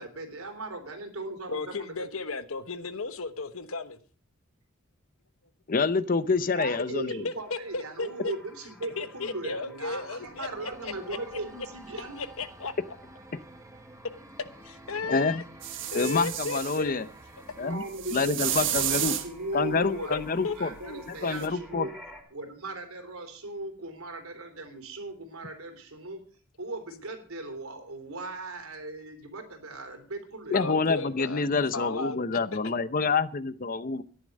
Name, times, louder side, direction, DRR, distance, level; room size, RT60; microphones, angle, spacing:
voice 1, 0.0-1.9 6.4-12.2 17.5-22.0 22.3-26.2 26.6-30.7, right 2 dB, 80° right, 5 dB, 3.5 m, -38 dB
voice 2, 1.5-4.0 7.2-8.3 9.0-11.2 12.1-12.7 14.6-15.4 15.9-16.9 20.1-20.5 20.8-21.0 30.5-32.2, left 4 dB, 75° left, 11 dB, 1.1 m, -35 dB
voice 3, 5.7-7.3 15.1-15.4 15.9-17.1 17.6-17.8 18.1-19.1 19.5-20.7 21.1-21.9 30.5-34.0, left 4 dB, 40° left, 14 dB, 0.7 m, -27 dB
sound 1, 7.2-22.2, equal, ahead, 4.0 m, -53 dB
sound 2, 10.2-17.8, right 2 dB, 15° right, 1.1 m, -51 dB
sound 3, 15.6-16.8 17.9-19.3 21.4-21.5, right 11 dB, 60° right, 1.4 m, -31 dB
13.0 x 11.0 x 5.3 m, 0.43 s
head